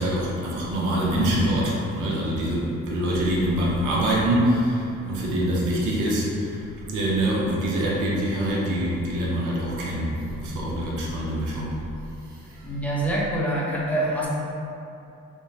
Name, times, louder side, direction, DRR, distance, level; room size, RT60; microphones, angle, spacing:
voice 1, 0.0-6.6 6.9-11.8, right 1 dB, 85° right, -4 dB, 0.6 m, -24 dB
voice 2, 12.6-14.3, right 1 dB, 5° left, -7 dB, 0.6 m, -25 dB
2.9 x 2.1 x 2.6 m, 2.6 s
cardioid pair, 90°, 30 cm